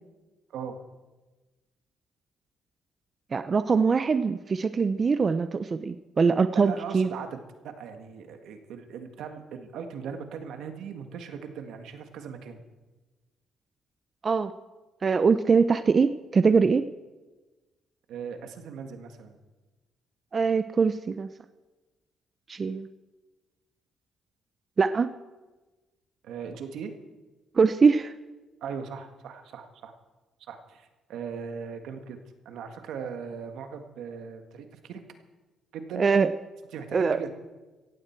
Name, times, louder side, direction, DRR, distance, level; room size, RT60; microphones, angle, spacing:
voice 1, 3.3-7.1 14.2-14.5 15.0-16.8 20.3-21.3 22.5-22.9 24.8-25.1 27.6-28.1 36.0-36.3 36.9-37.3, right 5 dB, 40° right, 12 dB, 0.5 m, -23 dB
voice 2, 6.5-7.3 7.6-12.6 18.1-19.4 26.2-26.9 28.6-29.9 30.5-32.2 32.5-35.0 35.7-36.1 36.7-37.3, right 6 dB, 80° right, 6 dB, 1.7 m, -39 dB
17.0 x 15.5 x 4.5 m, 1.2 s
cardioid pair, 90°, 0 cm